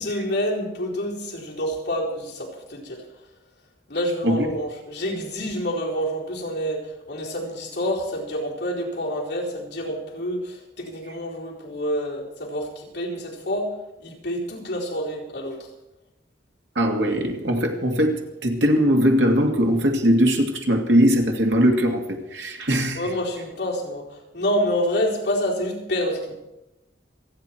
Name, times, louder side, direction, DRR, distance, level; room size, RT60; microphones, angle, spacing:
voice 1, 0.0-3.0 3.9-13.7 14.0-15.7 23.0-26.3, equal, 60° left, 4.2 m, -28 dB
voice 2, 16.8-23.1, equal, 75° right, 2.4 m, -20 dB
27.5 x 9.5 x 4.6 m
head